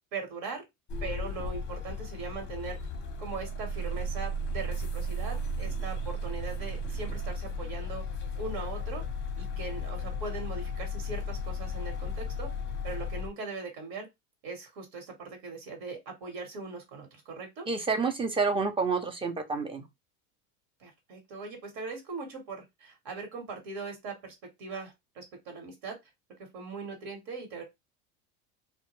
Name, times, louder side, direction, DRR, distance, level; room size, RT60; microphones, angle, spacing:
voice 1, 0.1-0.6 1.0-2.8 3.2-8.0 8.4-9.0 9.4-12.5 12.8-14.1 14.4-17.7 20.8-26.0 26.4-27.6, right 4 dB, 60° right, 1.2 m, -40 dB
sound 1, 0.9-13.3, left 1 dB, 30° left, 0.7 m, -35 dB
voice 2, 17.7-19.8, right 4 dB, 15° right, 0.5 m, -28 dB
2.2 x 2.1 x 3.0 m
hypercardioid pair, 100°, 40 cm